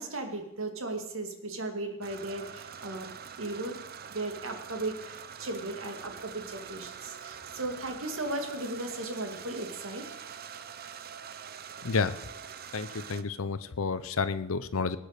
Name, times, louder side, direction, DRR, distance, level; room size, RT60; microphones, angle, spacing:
voice 1, 0.0-3.1 3.4-3.8 4.1-10.0, right 2 dB, 75° right, 5 dB, 2.3 m, -36 dB
sound 1, 2.0-13.2, right 7 dB, 45° right, 0.7 m, -44 dB
voice 2, 11.8-12.2 12.7-15.0, left 4 dB, 80° left, 13 dB, 0.7 m, -30 dB
19.0 x 8.6 x 6.6 m, 0.92 s
head